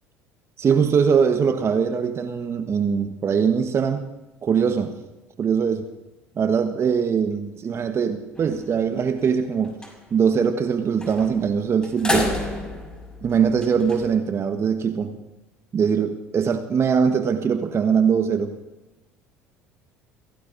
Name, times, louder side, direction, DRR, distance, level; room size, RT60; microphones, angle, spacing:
voice 1, 0.6-4.0 4.4-4.9 5.4-5.9 6.4-9.7 10.1-12.3 13.2-15.1 15.7-18.5, right 6 dB, 35° right, 7 dB, 1.3 m, -21 dB
sound 1, 8.4-8.9 9.3-9.4 9.6-9.9 11.0-11.4 11.8-14.1, left 1 dB, 10° left, 5.4 m, -29 dB
29.5 x 17.0 x 2.7 m, 1.0 s
hypercardioid pair, 65°, 7 cm